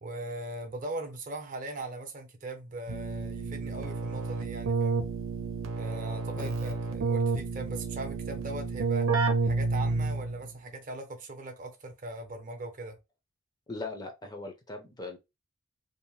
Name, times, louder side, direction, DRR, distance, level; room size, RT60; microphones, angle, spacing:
voice 1, 0.0-5.0 5.8-9.1 9.4-13.0, right 2 dB, 40° right, 0.6 m, -40 dB
Keyboard (musical), 2.9-10.4, right 3 dB, 80° right, 0.7 m, -30 dB
voice 2, 13.7-15.2, left 3 dB, 20° left, 0.5 m, -39 dB
2.7 x 2.0 x 3.0 m
head